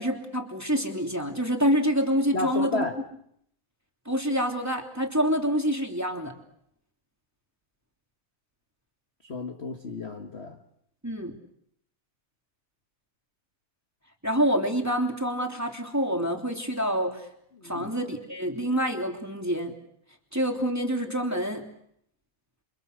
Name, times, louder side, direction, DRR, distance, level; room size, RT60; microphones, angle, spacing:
voice 1, 0.0-2.8 4.0-6.3 11.0-11.3 14.2-17.2 17.6-19.7 20.3-21.6, equal, 5° right, 2.7 m, -27 dB
voice 2, 2.3-3.0 9.2-10.6 17.6-17.9, left 2 dB, 35° left, 1.1 m, -32 dB
29.0 x 25.5 x 6.7 m
omnidirectional pair, 3.4 m